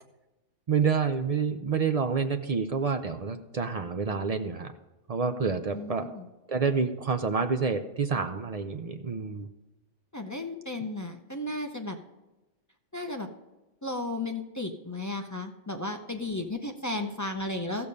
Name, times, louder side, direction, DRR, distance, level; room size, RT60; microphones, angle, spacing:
voice 1, 0.7-4.7 5.1-6.1 6.5-9.5, right 5 dB, 55° right, 8 dB, 0.4 m, -28 dB
voice 2, 5.7-6.3 10.1-12.0 12.9-13.3 13.8-17.9, left 2 dB, 30° left, 4 dB, 0.3 m, -34 dB
14.5 x 6.9 x 5.3 m, 1.1 s
omnidirectional pair, 1.3 m